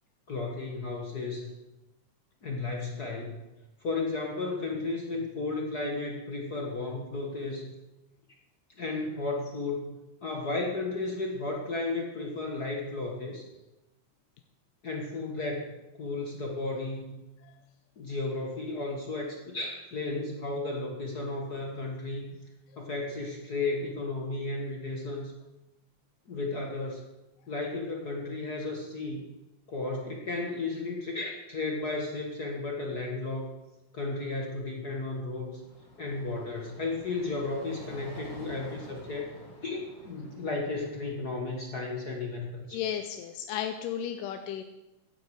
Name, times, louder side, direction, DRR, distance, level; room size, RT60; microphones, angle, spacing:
voice 1, 0.3-1.5 2.4-3.4 3.8-7.7 8.8-13.5 14.8-15.7 15.9-17.2 18.0-22.4 22.8-25.3 26.3-27.0 27.5-29.2 29.7-33.5 33.9-35.6 36.0-39.3 39.6-42.8, left 3 dB, 45° left, 0 dB, 1.3 m, -34 dB
sound 1, 35.3-41.3, equal, 25° left, 4.5 m, -48 dB
voice 2, 42.7-44.6, left 9 dB, 90° left, 7 dB, 2.3 m, -34 dB
15.5 x 11.0 x 4.8 m, 1.0 s
omnidirectional pair, 3.7 m